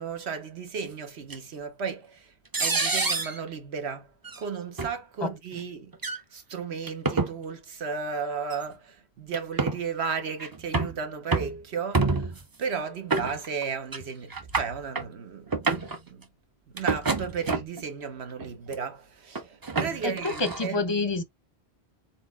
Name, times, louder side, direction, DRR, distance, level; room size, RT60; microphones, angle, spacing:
voice 1, 0.0-2.3 2.6-4.1 4.4-5.9 6.3-16.2 16.7-20.8, right 6 dB, 75° right, 1.3 m, -34 dB
sound 1, 1.3-1.4 2.5-3.4 4.2-4.4 4.8-4.9 5.9-6.2 6.9-7.3 8.5-8.6 9.3-9.8 10.4-11.0 11.3-11.6 11.9-12.4 13.1-13.6 13.9-14.0 14.3-15.1 15.5-16.0 16.8-17.8 18.4-18.8 19.4-20.7, right 3 dB, 30° right, 0.5 m, -27 dB
voice 2, 20.0-21.2, left 3 dB, 30° left, 0.6 m, -28 dB
4.1 x 4.1 x 2.4 m
omnidirectional pair, 1.1 m